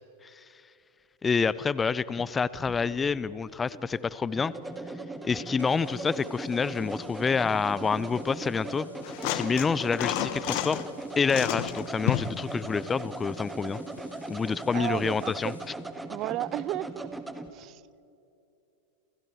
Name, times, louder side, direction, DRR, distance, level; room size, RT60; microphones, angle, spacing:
voice 1, 1.2-4.5 5.2-8.9 9.3-10.8 11.2-13.8 14.3-15.5, left 5 dB, 15° left, 19 dB, 0.7 m, -28 dB
sound 1, 2.2-17.5, right 2 dB, 5° right, 1.8 m, -39 dB
sound 2, 5.6-15.8, left 2 dB, 85° left, 3.8 m, -58 dB
sound 3, 9.0-10.9 11.3-12.4 14.0-14.1, left 14 dB, 45° left, 1.4 m, -31 dB
voice 2, 14.7-15.3 16.1-17.1 17.5-17.8, right 15 dB, 35° right, 22 dB, 0.6 m, -33 dB
30.0 x 29.5 x 4.7 m, 2.6 s
figure-of-eight pair, 90°, 0 cm